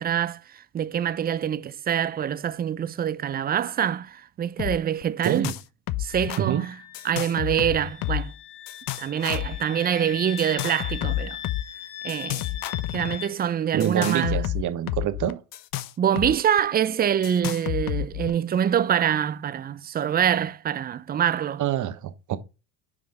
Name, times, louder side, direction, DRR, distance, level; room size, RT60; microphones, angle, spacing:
voice 1, 0.0-5.5 6.0-6.7 7.0-8.3 9.0-11.4 12.0-12.5 12.9-14.5 16.0-21.6, right 9 dB, 25° right, 0.4 m, -25 dB
sound 1, 4.6-4.8 5.0-5.6 5.9-6.4 6.9-8.3 8.7-9.6 10.4-11.6 12.1-13.2 13.8-16.3 16.6-16.7 17.2-18.3, left 15 dB, 55° left, 0.6 m, -30 dB
Wind instrument woodwind instrument, 6.0-13.3, left 11 dB, 70° left, 1.5 m, -40 dB
voice 2, 13.7-15.4 21.6-22.4, right 11 dB, 45° right, 1.1 m, -26 dB
5.8 x 5.0 x 3.6 m
supercardioid pair, 90°, 42 cm